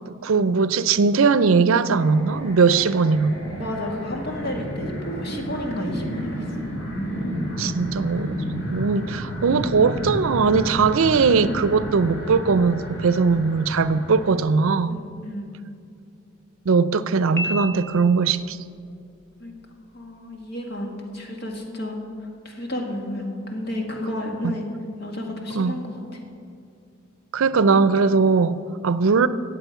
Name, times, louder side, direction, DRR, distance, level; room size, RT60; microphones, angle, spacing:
voice 1, 0.1-3.4 7.6-8.4 8.7-15.0 16.7-18.6 24.4-24.6 25.5-25.8 27.3-29.3, right 4 dB, 80° right, 14 dB, 0.5 m, -20 dB
sound 1, 1.9-14.3, equal, 65° left, 3.2 m, -31 dB
voice 2, 3.5-6.5 14.9-15.5 19.4-19.5 19.9-22.0 22.5-24.7 25.0-26.0, left 1 dB, 50° left, 1 dB, 1.9 m, -31 dB
Piano, 17.4-18.5, left 2 dB, 15° left, 0.7 m, -31 dB
17.0 x 7.6 x 5.7 m, 2.5 s
head